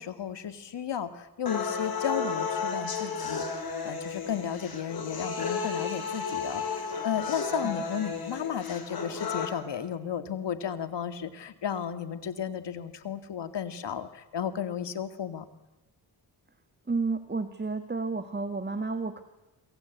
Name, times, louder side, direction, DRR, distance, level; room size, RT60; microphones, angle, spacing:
voice 1, 0.0-15.5, left 8 dB, 75° left, 10 dB, 2.2 m, -34 dB
sound 1, 1.5-9.5, left 5 dB, 55° left, 6.0 m, -33 dB
voice 2, 16.9-19.2, right 4 dB, 25° right, 9 dB, 1.8 m, -31 dB
26.5 x 24.0 x 8.3 m, 1.1 s
cardioid pair, 80°, 42 cm